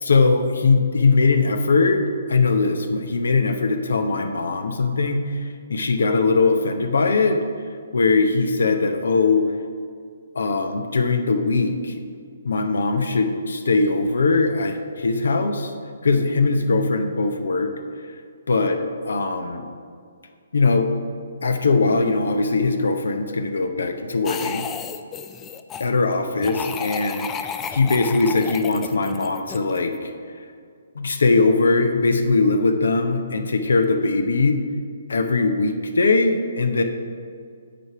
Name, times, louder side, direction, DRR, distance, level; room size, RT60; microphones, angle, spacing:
voice 1, 0.0-7.4 7.9-9.5 10.3-12.0 12.4-15.7 16.0-17.7 18.5-19.6 20.5-20.9 21.4-24.7 25.8-30.1 30.9-34.6 35.1-36.8, left 3 dB, 75° left, 7 dB, 0.7 m, -20 dB
sound 1, 24.2-25.9 26.4-29.9, left 7 dB, 15° left, 0.3 m, -32 dB
8.9 x 3.4 x 5.8 m, 2.1 s
hypercardioid pair, 140°, 0 cm